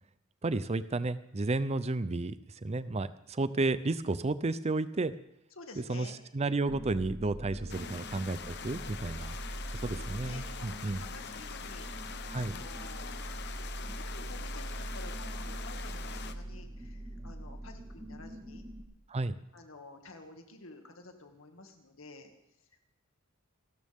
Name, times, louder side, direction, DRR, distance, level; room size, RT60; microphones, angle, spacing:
voice 1, 0.4-2.4 2.6-5.1 5.9-6.1 6.3-9.3 9.8-11.0 12.3-12.5 19.1-19.4, right 2 dB, 30° right, 14 dB, 0.5 m, -32 dB
voice 2, 5.6-6.2 7.6-8.0 9.7-11.9 12.3-13.4 13.7-18.7 19.5-22.3 22.7-22.8, left 2 dB, 75° left, 4 dB, 2.2 m, -51 dB
sound 1, 6.7-18.8, right 1 dB, 10° right, 1.9 m, -42 dB
sound 2, 7.7-16.3, left 7 dB, 55° left, 1.0 m, -44 dB
28.5 x 13.0 x 3.6 m, 0.81 s
head